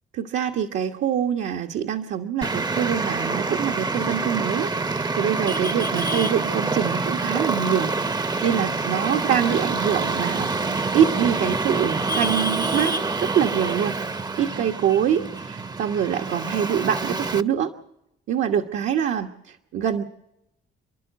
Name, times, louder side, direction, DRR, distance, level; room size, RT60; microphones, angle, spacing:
voice 1, 0.1-13.9 14.2-17.7 18.3-20.0, right 9 dB, 80° right, 2 dB, 1.3 m, -25 dB
Traffic noise roadway noise, 2.4-17.4, right 3 dB, 20° right, 0.7 m, -26 dB
29.5 x 11.5 x 8.1 m, 0.83 s
cardioid pair, 90°, 20 cm